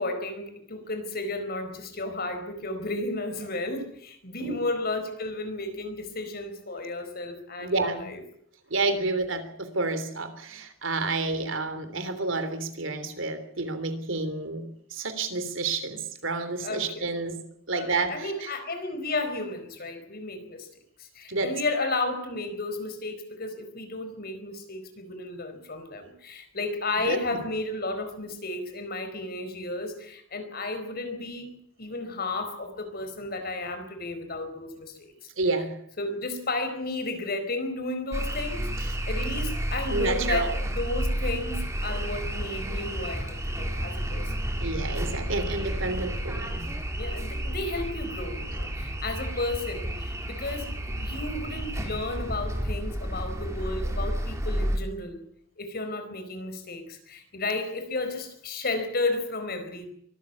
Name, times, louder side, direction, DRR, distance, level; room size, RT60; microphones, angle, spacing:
voice 1, 0.0-8.2 16.6-17.1 17.7-20.7 21.0-35.0 36.0-44.4 47.0-55.2 55.6-59.9, left 2 dB, 50° left, 7 dB, 4.6 m, -33 dB
voice 2, 7.6-8.1 8.7-17.4 17.7-18.5 21.3-21.5 27.0-27.4 35.4-35.8 39.9-40.6 44.6-46.7, right 3 dB, 70° right, 10 dB, 3.3 m, -30 dB
sound 1, 38.1-54.8, equal, 15° right, 3.4 m, -31 dB
24.0 x 14.0 x 8.4 m, 0.67 s
head